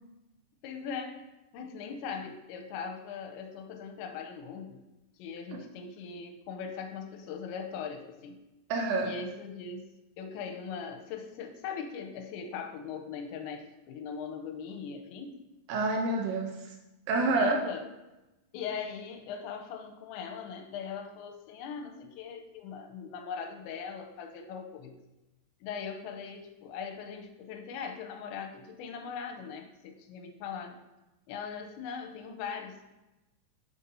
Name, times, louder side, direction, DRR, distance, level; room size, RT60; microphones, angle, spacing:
voice 1, 0.6-1.2 1.5-4.8 5.2-8.4 9.0-9.9 10.2-15.4 17.3-17.9 18.5-24.9 25.6-30.8 31.3-32.8, left 6 dB, 90° left, 5 dB, 2.9 m, -40 dB
voice 2, 8.7-9.2 15.7-16.8 17.1-17.6, right 3 dB, 75° right, 1 dB, 2.5 m, -28 dB
9.4 x 6.2 x 2.7 m, 1.0 s
omnidirectional pair, 5.2 m